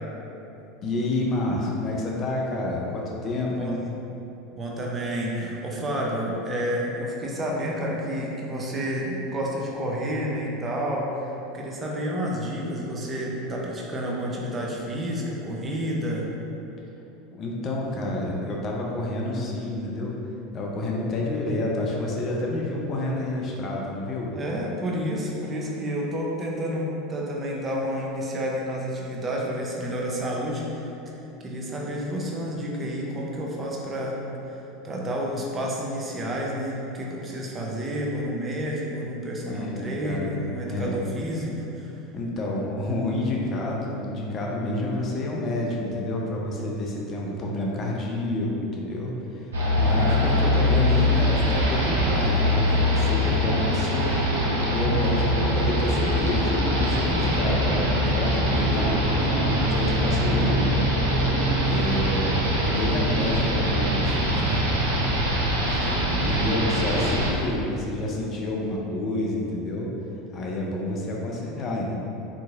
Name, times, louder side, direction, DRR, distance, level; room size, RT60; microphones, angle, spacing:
voice 1, 0.8-3.8 17.3-20.2 20.5-24.4 39.5-41.0 42.1-54.2 54.7-60.9 61.6-62.3 62.6-64.9 65.6-69.9 70.3-71.9, left 2 dB, 40° left, -2 dB, 0.5 m, -29 dB
voice 2, 3.5-3.8 4.5-16.3 24.3-30.9 31.2-42.0, equal, 25° right, -3 dB, 0.6 m, -30 dB
sound 1, 49.5-67.3, equal, 80° right, 0.6 m, -23 dB
3.7 x 2.9 x 2.4 m, 3.0 s
figure-of-eight pair, 80°, 0 cm